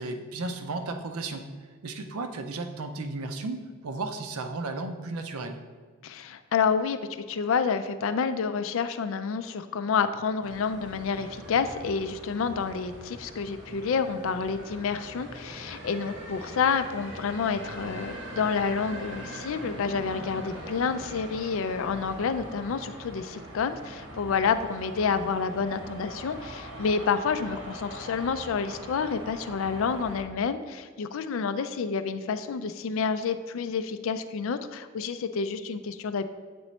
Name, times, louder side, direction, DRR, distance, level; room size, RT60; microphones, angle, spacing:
voice 1, 0.0-1.4 1.8-5.6, right 3 dB, 90° right, 7 dB, 0.6 m, -34 dB
voice 2, 6.0-36.2, left 5 dB, 65° left, 10 dB, 0.3 m, -29 dB
sound 1, 10.4-30.2, right 1 dB, 60° right, 1.2 m, -42 dB
7.8 x 3.0 x 4.2 m, 1.5 s
head